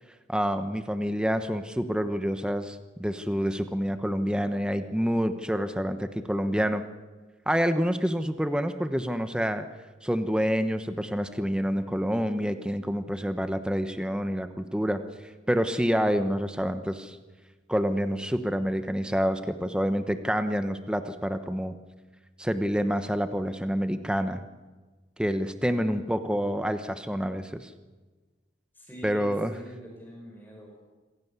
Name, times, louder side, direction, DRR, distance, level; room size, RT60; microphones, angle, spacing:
voice 1, 0.3-6.8 7.5-9.7 10.0-15.0 15.5-17.2 17.7-21.7 22.4-24.4 25.2-27.7 29.0-29.5, equal, 5° right, 9 dB, 1.0 m, -27 dB
voice 2, 28.7-30.8, equal, 10° left, 0 dB, 5.0 m, -45 dB
27.0 x 17.0 x 8.2 m, 1.3 s
head